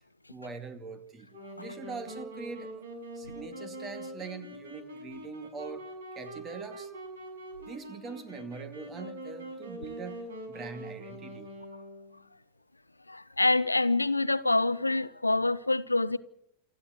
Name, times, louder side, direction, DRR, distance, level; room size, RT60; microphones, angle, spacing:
voice 1, 0.3-1.3 1.6-2.8 3.1-5.9 6.1-6.9 7.7-11.5, right 5 dB, 25° right, 2.4 m, -42 dB
Wind instrument woodwind instrument, 1.3-12.2, right 1 dB, 65° right, 6.7 m, -43 dB
voice 2, 13.1-16.2, left 2 dB, 85° left, 0.7 m, -26 dB
28.5 x 11.0 x 9.8 m
figure-of-eight pair, 90°, 0 cm